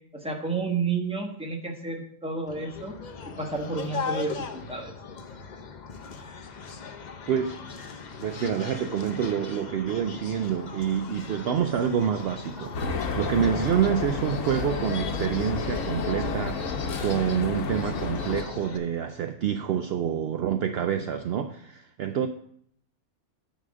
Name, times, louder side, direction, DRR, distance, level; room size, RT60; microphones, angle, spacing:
voice 1, 0.1-2.9 3.4-4.9, right 4 dB, 5° right, 1.1 m, -31 dB
sound 1, 2.5-18.8, left 5 dB, 45° left, 0.6 m, -39 dB
voice 2, 7.3-7.6 8.2-22.3, right 8 dB, 70° right, 0.6 m, -27 dB
sound 2, 12.7-18.4, left 4 dB, 65° left, 1.2 m, -31 dB
9.6 x 4.2 x 6.2 m
omnidirectional pair, 1.5 m